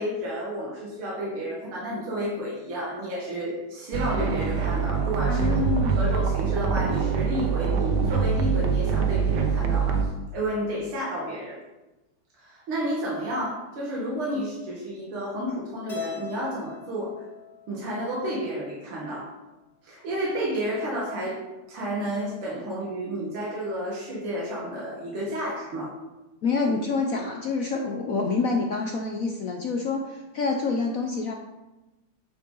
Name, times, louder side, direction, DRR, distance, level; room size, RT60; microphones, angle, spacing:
voice 1, 0.0-5.5 6.0-11.6 12.4-17.1 17.7-19.3 19.8-21.4 21.7-25.9, right 1 dB, 85° right, -4 dB, 2.6 m, -31 dB
sound 1, 3.9-10.0, right 6 dB, 60° right, 1.3 m, -24 dB
voice 2, 5.2-6.2 26.4-31.3, left 4 dB, 70° left, 3 dB, 0.8 m, -27 dB
Keyboard (musical), 15.9-18.2, left 6 dB, 15° left, 1.7 m, -40 dB
9.8 x 6.5 x 3.9 m, 1.1 s
omnidirectional pair, 2.3 m